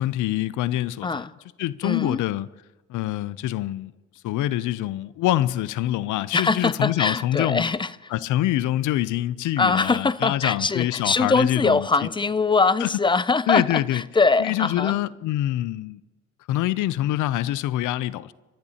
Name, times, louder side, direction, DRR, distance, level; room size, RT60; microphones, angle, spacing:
voice 1, 0.0-1.3 1.6-2.5 2.9-3.9 4.2-7.7 8.1-12.1 12.8-12.9 13.5-14.0 14.4-16.0 16.5-18.3, left 14 dB, 85° left, 0.5 m, -25 dB
voice 2, 1.0-1.3 1.8-2.2 6.3-8.1 9.6-15.0, left 4 dB, 15° left, 0.4 m, -22 dB
25.5 x 13.5 x 2.8 m
cardioid pair, 90°, 30 cm